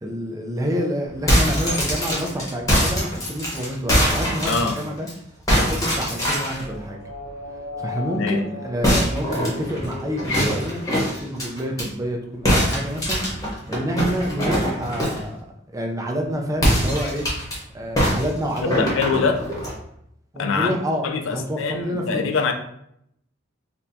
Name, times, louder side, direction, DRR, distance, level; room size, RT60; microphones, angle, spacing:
voice 1, 0.0-5.1 5.5-7.0 7.8-10.8 11.2-13.2 13.7-15.4 15.7-17.3 17.7-19.0 20.3-22.3, equal, 15° right, 1 dB, 0.4 m, -28 dB
sound 1, 1.1-5.1 5.5-6.6 8.8-11.9 12.5-15.3 16.5-17.6 18.0-19.8, equal, 20° left, 1.0 m, -22 dB
voice 2, 4.4-4.8 8.2-8.4 18.6-19.4 20.4-20.8 21.0-22.5, left 5 dB, 85° left, 6 dB, 0.4 m, -24 dB
sound 2, 5.9-11.4, left 3 dB, 60° right, 1.2 m, -37 dB
4.1 x 2.2 x 2.6 m, 0.75 s
head